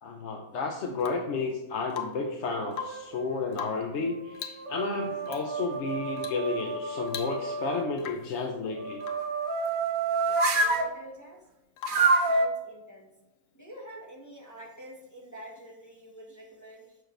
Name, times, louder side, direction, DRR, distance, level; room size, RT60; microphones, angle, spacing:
voice 1, 0.0-9.0, left 4 dB, 65° left, 2 dB, 1.0 m, -32 dB
Rain / Water tap faucet / Drip, 1.0-1.4 1.9-2.4 2.7-3.1 3.5-4.0 4.3-4.7 5.3-5.5 6.2-6.5 6.7-6.8 7.1-7.6 8.0-8.4 9.0-9.3 11.8-12.2 14.1-14.2, left 8 dB, 90° left, 1.1 m, -40 dB
sound 1, 2.5-3.3 3.9-7.9 8.7-10.9 11.9-12.5, right 3 dB, 50° right, 0.7 m, -29 dB
voice 2, 10.2-11.5 11.9-13.1 13.5-17.0, right 1 dB, 15° left, -2 dB, 1.2 m, -47 dB
6.3 x 6.3 x 3.2 m, 0.94 s
omnidirectional pair, 1.4 m